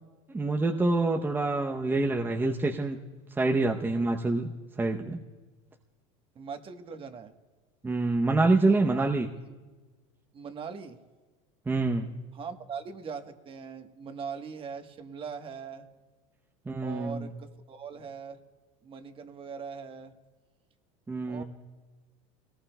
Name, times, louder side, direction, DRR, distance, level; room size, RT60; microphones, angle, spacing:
voice 1, 0.3-3.0 3.4-4.5 4.8-5.2 7.8-9.3 11.7-12.1 16.7-17.3 21.1-21.4, right 2 dB, 10° right, 2 dB, 0.7 m, -26 dB
voice 2, 6.3-7.3 8.9-9.1 10.3-11.0 12.3-15.9 16.8-18.4 18.8-20.1 21.3-21.4, right 6 dB, 30° right, 7 dB, 1.1 m, -40 dB
24.0 x 18.5 x 2.2 m, 1.3 s
supercardioid pair, 110°, 17 cm